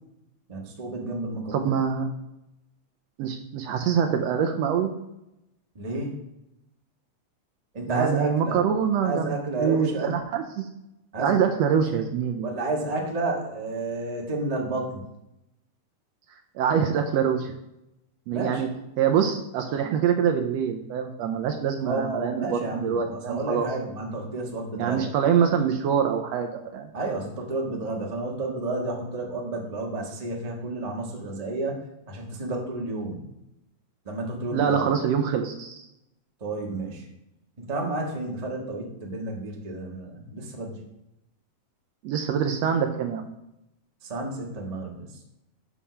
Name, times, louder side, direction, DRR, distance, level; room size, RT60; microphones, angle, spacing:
voice 1, 0.5-1.7 5.7-6.1 7.7-8.6 9.0-10.1 11.1-12.0 12.4-15.0 18.3-18.6 21.8-25.1 26.9-31.7 32.1-33.2 34.0-34.8 36.4-37.1 37.6-40.8 44.0-45.1, right 2 dB, 30° right, -1 dB, 0.6 m, -31 dB
voice 2, 1.5-2.1 3.2-4.9 7.9-10.6 11.2-12.5 16.5-17.5 18.3-18.7 19.0-23.7 24.8-26.9 34.5-35.9 42.0-43.3, right 7 dB, 75° right, 5 dB, 1.6 m, -25 dB
7.2 x 4.9 x 5.7 m, 0.86 s
omnidirectional pair, 3.3 m